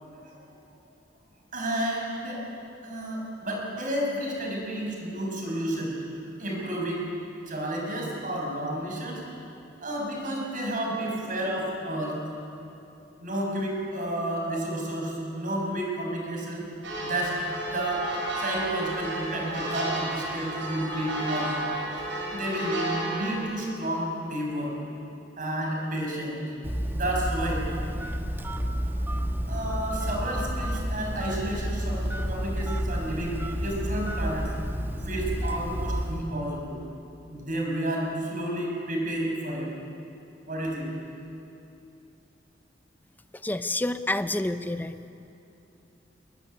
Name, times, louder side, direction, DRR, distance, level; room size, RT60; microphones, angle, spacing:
voice 1, 1.5-2.4 2.8-7.1 7.5-9.2 9.8-12.2 13.2-16.7 17.0-17.4 17.7-18.1 18.4-21.5 22.3-24.8 25.4-26.4 26.9-27.6 29.5-34.5 35.1-36.8 37.3-39.7 40.5-40.9, right 1 dB, 50° right, -1 dB, 6.6 m, -31 dB
sound 1, 16.8-23.4, right 2 dB, 85° right, 7.4 m, -32 dB
Telephone, 26.6-36.3, equal, 15° right, 1.4 m, -30 dB
voice 2, 43.4-44.9, left 1 dB, 10° left, 10 dB, 0.7 m, -28 dB
23.0 x 20.5 x 9.8 m, 2.8 s
head